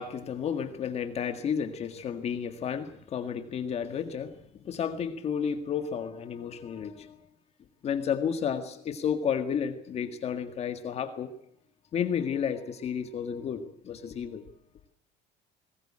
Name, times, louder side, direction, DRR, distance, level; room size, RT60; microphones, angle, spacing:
voice 1, 0.0-7.2 7.8-11.3 11.9-14.4, left 7 dB, 35° left, 8 dB, 1.8 m, -32 dB
21.0 x 19.5 x 8.8 m, 0.64 s
cardioid pair, 170°, 19 cm